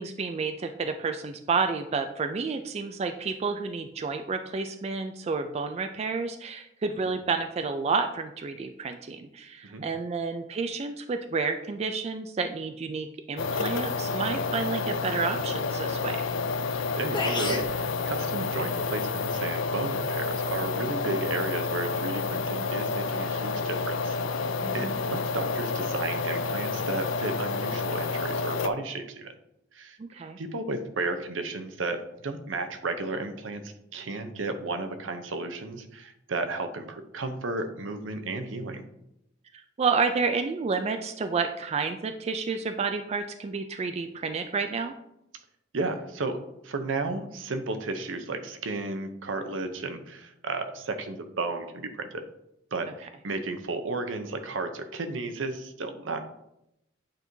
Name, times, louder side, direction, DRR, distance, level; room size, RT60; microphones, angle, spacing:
voice 1, 0.0-16.3 24.6-25.0 30.0-30.4 39.8-44.9, right 4 dB, 35° right, 7 dB, 0.3 m, -30 dB
sound 1, 13.4-28.7, left 4 dB, 80° left, 0.4 m, -29 dB
voice 2, 16.9-24.2 24.7-29.3 29.7-30.0 30.4-38.8 45.7-52.2 52.7-56.2, right 3 dB, 80° right, 7 dB, 0.7 m, -33 dB
sound 2, 17.1-17.7, left 3 dB, 25° left, 0.8 m, -30 dB
8.7 x 4.5 x 2.7 m, 0.83 s
head